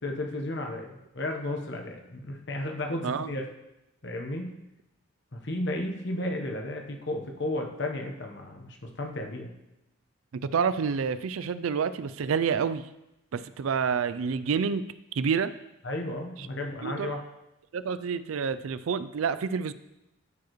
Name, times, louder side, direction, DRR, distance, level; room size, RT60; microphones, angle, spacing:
voice 1, 0.0-3.4 4.0-4.5 5.3-9.5 15.8-17.2, left 1 dB, 55° left, 3 dB, 1.1 m, -33 dB
voice 2, 10.4-12.8 13.3-14.9 15.1-15.5 16.8-17.1 17.7-19.7, right 6 dB, 80° right, 13 dB, 0.4 m, -28 dB
13.5 x 4.7 x 3.1 m, 0.90 s
head